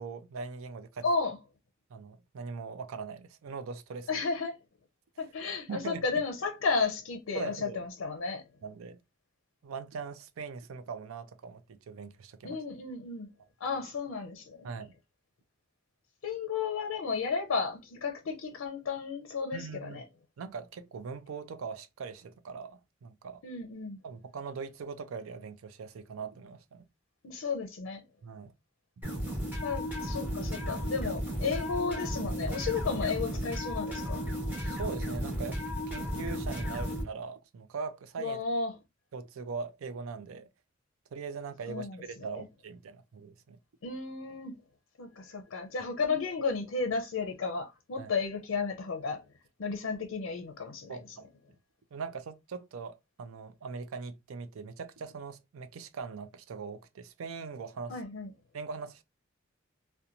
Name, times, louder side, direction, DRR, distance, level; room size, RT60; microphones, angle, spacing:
voice 1, 0.0-1.1 1.9-4.3 5.2-5.3 5.7-6.1 7.3-7.8 8.6-9.0 9.6-12.6 14.6-14.9 19.5-20.0 20.4-23.4 24.0-26.8 28.2-28.5 34.6-38.4 39.1-40.5 41.1-43.6 48.0-48.1 50.9-51.3 51.9-58.0 58.5-59.0, right 5 dB, 90° right, 0.4 m, -41 dB
voice 2, 1.0-1.4 4.1-4.6 5.2-8.4 12.4-13.3 13.6-14.7 16.2-20.0 23.4-24.0 27.2-28.0 29.6-34.3 38.2-38.7 41.7-42.0 42.3-42.4 43.8-44.5 45.0-49.2 49.6-51.0 57.9-58.3, left 4 dB, 70° left, 0.5 m, -33 dB
sound 1, 29.0-37.0, equal, 10° right, 1.0 m, -34 dB
2.8 x 2.2 x 2.4 m
head